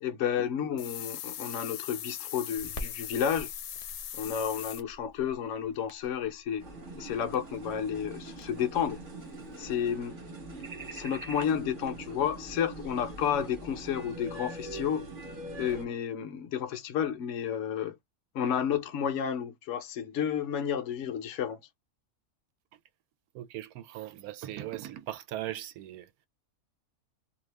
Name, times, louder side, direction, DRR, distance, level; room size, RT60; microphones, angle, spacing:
voice 1, 0.0-3.5 4.1-6.7 7.0-9.0 9.6-10.2 10.9-15.1 15.5-18.0 18.3-21.6, left 8 dB, 65° left, 0.9 m, -31 dB
sound 1, 0.8-4.8, left 11 dB, 85° left, 1.1 m, -40 dB
Crackle, 2.6-9.9, left 1 dB, 45° left, 0.5 m, -48 dB
sound 2, 6.6-15.8, right 2 dB, 40° right, 1.0 m, -43 dB
voice 2, 23.3-26.1, right 13 dB, 80° right, 1.0 m, -39 dB
2.7 x 2.4 x 3.3 m
omnidirectional pair, 1.5 m